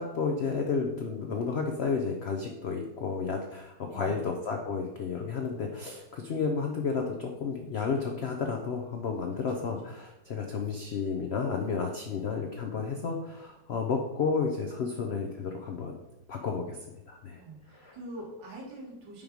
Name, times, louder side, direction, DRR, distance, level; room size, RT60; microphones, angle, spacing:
voice 1, 0.0-16.0 16.3-16.8 17.1-17.4 17.7-18.0, left 5 dB, 75° left, 3 dB, 0.6 m, -32 dB
voice 2, 3.8-4.3 9.6-9.7 17.3-19.2, right 1 dB, 85° right, -3 dB, 2.3 m, -44 dB
5.5 x 4.7 x 5.1 m, 0.98 s
omnidirectional pair, 2.0 m